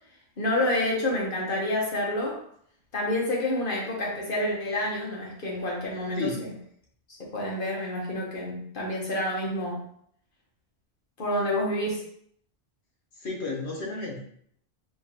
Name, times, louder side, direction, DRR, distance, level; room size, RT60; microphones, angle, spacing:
voice 1, 0.4-2.4 2.9-6.3 7.3-9.8 11.2-12.0, left 1 dB, 55° left, -3 dB, 1.3 m, -28 dB
voice 2, 6.1-6.5 13.2-14.2, left 2 dB, 85° left, -2 dB, 1.4 m, -32 dB
4.4 x 2.7 x 2.9 m, 0.65 s
omnidirectional pair, 1.1 m